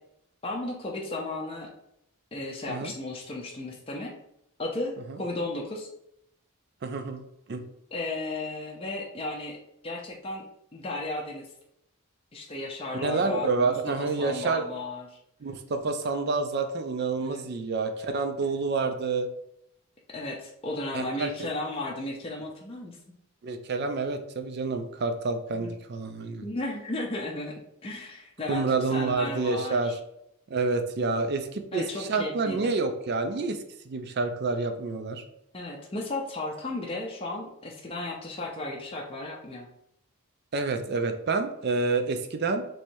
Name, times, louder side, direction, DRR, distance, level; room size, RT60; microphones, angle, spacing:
voice 1, 0.4-1.7 2.3-4.1 4.6-5.9 7.9-9.6 9.8-10.5 10.7-11.5 12.3-15.2 17.2-17.5 18.4-18.6 20.1-23.0 25.5-25.7 26.4-27.5 27.8-30.0 31.7-32.7 35.5-39.7, left 2 dB, 25° left, -1 dB, 0.5 m, -34 dB
voice 2, 6.8-7.6 12.9-14.7 15.4-19.3 20.9-21.3 23.4-26.4 28.5-30.0 30.5-35.2 40.5-42.6, right 3 dB, 45° right, 7 dB, 0.4 m, -28 dB
3.1 x 2.7 x 4.5 m, 0.78 s
head